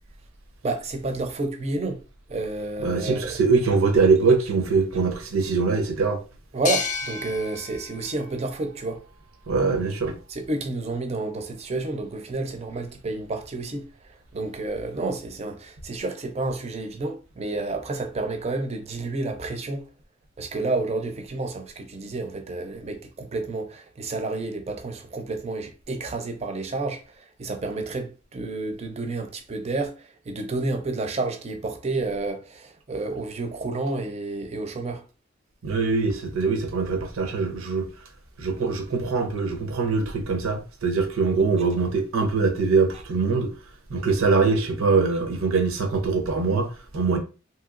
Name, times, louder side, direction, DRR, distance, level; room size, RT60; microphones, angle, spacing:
voice 1, 0.6-2.0 2.3-3.4 6.5-9.0 10.3-13.9 14.3-19.9 20.4-35.0, right 2 dB, 30° right, 0.5 m, -30 dB
voice 2, 2.8-6.2 9.5-10.2 35.6-37.9 38.4-43.5 43.9-47.2, right 4 dB, 85° right, 0.7 m, -23 dB
sound 1, 6.6-10.0, left 5 dB, 35° left, 0.4 m, -34 dB
3.1 x 2.9 x 2.4 m
head